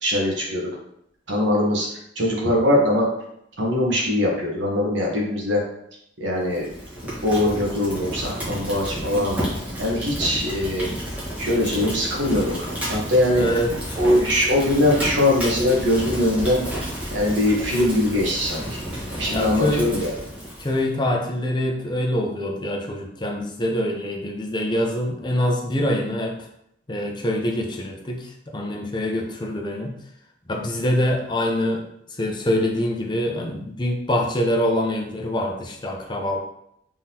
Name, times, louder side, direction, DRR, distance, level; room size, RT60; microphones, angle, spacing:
voice 1, 0.0-0.7 1.3-1.9 2.1-3.0 3.6-5.6 6.2-6.7 7.2-9.4 9.8-10.9 11.4-13.4 14.0-16.7 17.1-18.8 19.1-20.1, left 1 dB, 70° right, -3 dB, 1.2 m, -21 dB
Fire, 6.4-20.8, equal, 10° right, 1.2 m, -31 dB
voice 2, 13.3-13.7 14.0-14.2 19.3-19.9 20.6-26.4 26.9-30.0 30.5-36.4, left 1 dB, 25° left, 1 dB, 0.6 m, -25 dB
3.7 x 3.6 x 2.9 m, 0.74 s
head